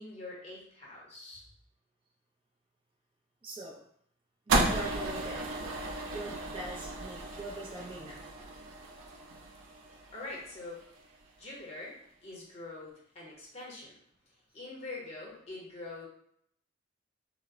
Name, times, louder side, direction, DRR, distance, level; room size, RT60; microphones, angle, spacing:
voice 1, 0.0-1.4 10.1-10.8 11.4-12.0 12.2-14.0 14.5-16.1, left 2 dB, 30° left, -5 dB, 0.8 m, -44 dB
voice 2, 3.4-3.8 4.5-5.5 6.1-8.3, right 1 dB, 25° right, -3 dB, 0.4 m, -42 dB
sound 1, 4.5-10.8, right 2 dB, 80° right, 0.4 m, -34 dB
2.1 x 2.0 x 3.5 m, 0.68 s
head